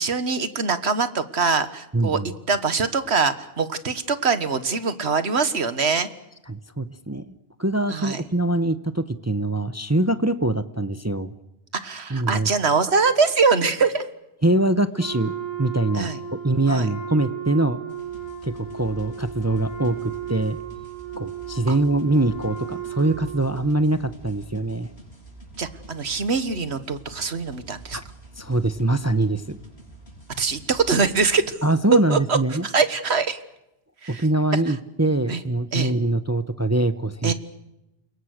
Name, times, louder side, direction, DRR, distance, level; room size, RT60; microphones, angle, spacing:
voice 1, 0.0-2.2 2.5-6.1 7.9-8.2 11.8-14.1 15.9-16.2 16.7-16.9 21.7-21.8 25.6-28.0 30.4-31.6 32.1-32.4 32.6-33.4 34.0-34.2 34.7-34.8 35.3-35.4 35.7-35.9 37.2-37.3, right 4 dB, 90° right, 11 dB, 1.8 m, -23 dB
voice 2, 1.9-2.3 6.5-7.3 7.6-11.3 12.1-12.5 14.4-15.3 15.6-16.1 16.4-17.8 18.4-20.6 21.2-24.9 27.9-28.0 28.4-29.6 31.6-32.7 34.1-37.3, right 2 dB, 15° right, 11 dB, 0.8 m, -23 dB
Wind instrument woodwind instrument, 15.0-23.8, right 8 dB, 45° left, 4.3 m, -35 dB
sound 1, 17.9-31.4, right 2 dB, 75° left, 7.7 m, -46 dB
28.5 x 22.5 x 6.6 m, 0.87 s
omnidirectional pair, 1.1 m